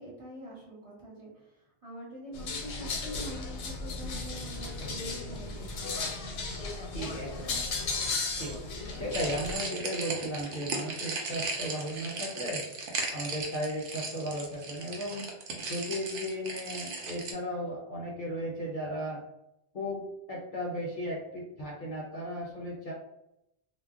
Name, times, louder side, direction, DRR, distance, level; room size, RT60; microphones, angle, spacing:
voice 1, 0.0-6.1, equal, 30° right, -7 dB, 1.0 m, -45 dB
sound 1, 2.3-9.6, left 3 dB, 80° left, 0.9 m, -35 dB
voice 2, 6.9-7.7 8.3-8.6 8.9-12.6 13.1-15.3 15.6-19.2 19.7-22.9, equal, 55° left, -4 dB, 0.7 m, -35 dB
sound 2, 9.1-17.3, right 3 dB, 85° right, 0.9 m, -37 dB
2.2 x 2.1 x 3.6 m, 0.85 s
omnidirectional pair, 1.1 m